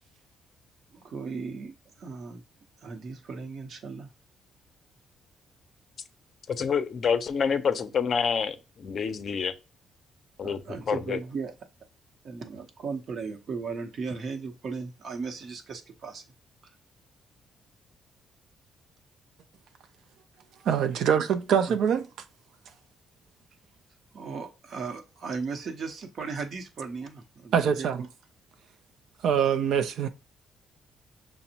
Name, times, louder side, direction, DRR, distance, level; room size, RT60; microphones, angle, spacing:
voice 1, 0.9-2.4 2.8-4.1 10.4-11.5 12.2-16.2 16.6-16.7 21.7-21.8 24.1-27.9, right 5 dB, 60° right, 0.8 m, -36 dB
voice 2, 6.5-9.5 10.4-10.6 10.9-11.2, left 6 dB, 50° left, 0.4 m, -27 dB
voice 3, 20.7-22.1 27.5-28.0 29.2-30.1, right 8 dB, 75° right, 0.4 m, -24 dB
5.8 x 2.0 x 2.7 m
cardioid pair, 90°, 0 cm